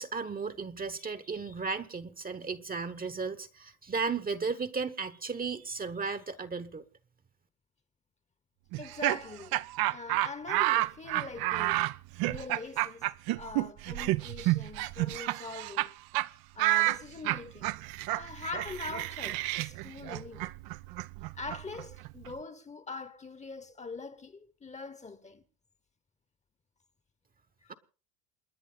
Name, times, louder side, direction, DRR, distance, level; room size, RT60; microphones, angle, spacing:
voice 1, 0.0-6.8 27.7-27.8, right 4 dB, 20° right, 1.1 m, -35 dB
Laughter, 8.7-15.9 16.1-16.3 16.6-22.3, right 18 dB, 55° right, 0.7 m, -30 dB
voice 2, 8.8-9.6 9.9-11.8 12.2-13.1 13.3-15.9 16.5-17.7 18.1-20.5 21.3-25.4 27.6-27.7, left 4 dB, 15° left, 1.1 m, -43 dB
28.5 x 10.0 x 3.9 m
supercardioid pair, 105°, 42 cm